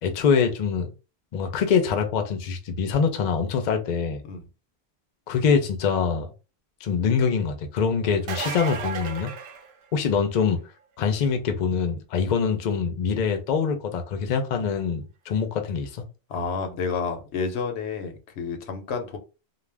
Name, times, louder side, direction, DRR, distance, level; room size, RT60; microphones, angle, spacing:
voice 1, 0.0-0.9 1.3-4.2 5.3-6.3 6.8-9.3 9.9-10.6 11.0-16.0, left 6 dB, 50° left, 0.6 m, -24 dB
sound 1, 8.1-10.3 15.9-16.0 17.8-17.9, right 5 dB, 75° right, 0.8 m, -34 dB
voice 2, 16.3-19.2, left 5 dB, 90° left, 0.9 m, -30 dB
2.4 x 2.1 x 3.2 m
omnidirectional pair, 1.1 m